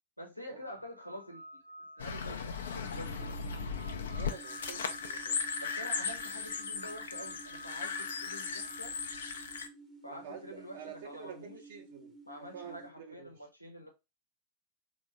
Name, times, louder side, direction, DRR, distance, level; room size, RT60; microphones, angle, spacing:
voice 1, 0.2-3.5 5.6-9.0 10.0-10.8 11.0-11.6 12.2-13.9, equal, 90° left, 0.8 m, -47 dB
sound 1, 0.7-9.2, right 1 dB, 85° right, 0.4 m, -52 dB
sound 2, 2.0-9.7, left 5 dB, 65° left, 0.5 m, -37 dB
sound 3, 2.8-12.9, right 3 dB, 10° right, 0.7 m, -54 dB
voice 2, 4.1-5.5 10.1-13.5, right 8 dB, 60° right, 0.8 m, -49 dB
3.4 x 2.5 x 3.2 m
figure-of-eight pair, 90°, 0 cm